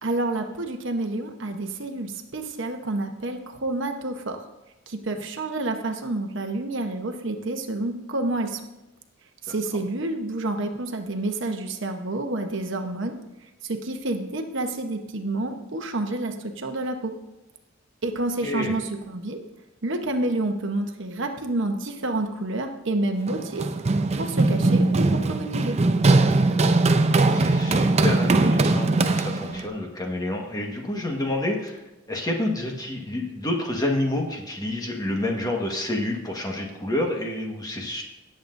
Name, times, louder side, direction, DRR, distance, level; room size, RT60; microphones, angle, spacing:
voice 1, 0.0-4.5 4.9-8.6 9.4-13.2 13.6-17.1 18.0-19.4 19.8-23.7 24.2-25.8, right 2 dB, 65° right, 5 dB, 1.0 m, -29 dB
voice 2, 18.4-18.7 26.9-31.8 32.1-38.0, left 1 dB, 20° left, 1 dB, 1.5 m, -29 dB
Run, 23.3-29.7, right 2 dB, 35° right, 0.5 m, -20 dB
17.5 x 7.8 x 2.6 m, 0.99 s
head